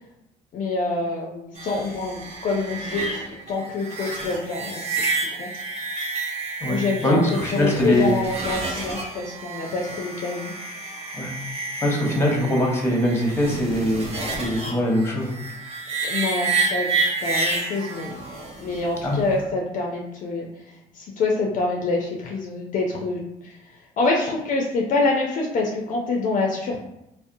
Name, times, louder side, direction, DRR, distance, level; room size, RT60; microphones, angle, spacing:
voice 1, 0.5-3.2 3.5-5.1 5.4-5.6 6.7-10.5 16.1-18.2 18.6-20.5 20.9-23.6 24.0-26.8, left 3 dB, 50° left, -1 dB, 0.4 m, -26 dB
sound 1, 1.6-19.4, right 3 dB, 40° right, 0.8 m, -30 dB
voice 2, 7.0-8.1 11.1-11.3 11.8-15.3 19.0-19.2, left 1 dB, 15° left, -1 dB, 0.7 m, -22 dB
2.6 x 2.0 x 2.5 m, 0.85 s
cardioid pair, 110°, 17 cm